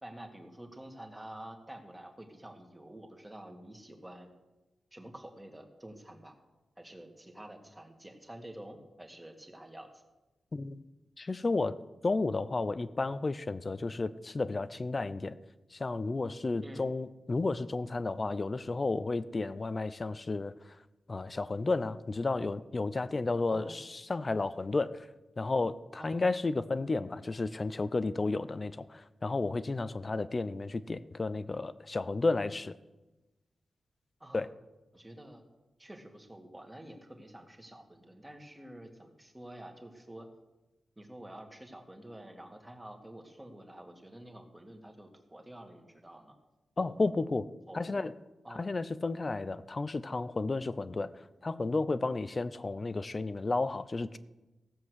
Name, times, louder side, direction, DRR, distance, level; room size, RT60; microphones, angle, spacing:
voice 1, 0.0-4.3 4.9-6.4 6.8-10.0 16.6-16.9 23.5-23.8 26.0-26.2 34.2-34.5 34.9-35.4 35.8-40.3 41.0-46.4 46.8-47.0 47.7-47.9 48.4-48.7, right 1 dB, 10° right, 3 dB, 2.0 m, -49 dB
voice 2, 10.5-10.8 11.2-11.8 12.0-15.4 15.7-20.5 21.1-25.1 25.4-32.7 34.3-34.5 46.8-47.5 47.7-48.1 48.6-51.1 51.4-54.2, left 3 dB, 35° left, 14 dB, 0.6 m, -32 dB
16.0 x 7.6 x 6.4 m, 1.1 s
wide cardioid pair, 100°, 0 cm